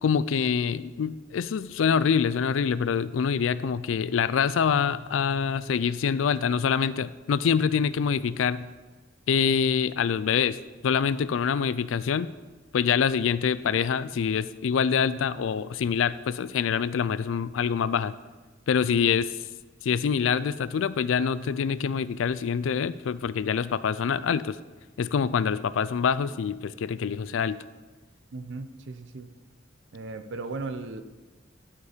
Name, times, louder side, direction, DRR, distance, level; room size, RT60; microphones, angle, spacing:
voice 1, 0.0-8.7 9.3-10.6 10.8-12.3 12.7-18.1 18.7-19.3 19.8-24.6 25.0-27.6, left 7 dB, 90° left, 16 dB, 0.4 m, -25 dB
voice 2, 28.3-29.3 29.9-31.0, right 3 dB, 70° right, 10 dB, 0.6 m, -36 dB
12.0 x 5.1 x 5.0 m, 1.2 s
head